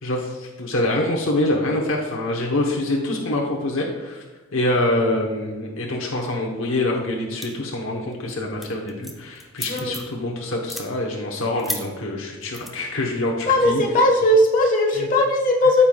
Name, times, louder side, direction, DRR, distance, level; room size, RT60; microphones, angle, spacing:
voice 1, 0.0-4.2 4.5-13.8 15.0-15.1, left 1 dB, 65° left, 0 dB, 0.9 m, -25 dB
sound 1, 7.4-7.8 8.1-8.3 8.6-10.2 10.6-10.9 11.6-11.8 12.5-12.7, equal, ahead, 0.6 m, -32 dB
voice 2, 13.5-15.8, left 1 dB, 40° left, 0 dB, 1.3 m, -18 dB
13.5 x 5.6 x 2.3 m, 1.2 s
head